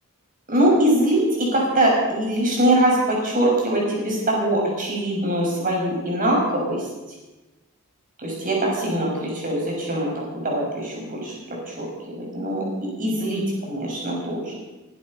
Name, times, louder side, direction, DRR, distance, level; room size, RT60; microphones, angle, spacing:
voice 1, 0.5-6.8 8.2-10.1 10.3-11.3 11.7-11.9 12.1-14.6, right 1 dB, 40° right, -2 dB, 6.9 m, -22 dB
22.5 x 11.5 x 5.5 m, 1.1 s
head